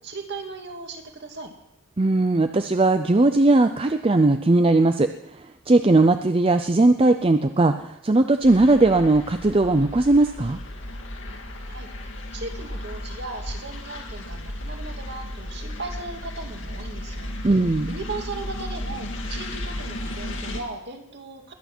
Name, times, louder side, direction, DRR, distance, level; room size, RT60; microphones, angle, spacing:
voice 1, 0.0-1.5 11.7-17.6 17.9-21.5, right 3 dB, 50° right, 3 dB, 2.2 m, -37 dB
voice 2, 2.0-5.1 5.7-10.6 17.4-18.0, right 2 dB, 25° right, 8 dB, 0.5 m, -18 dB
sound 1, 8.4-20.6, left 1 dB, 60° left, 2.1 m, -34 dB
21.5 x 9.5 x 6.1 m, 0.83 s
head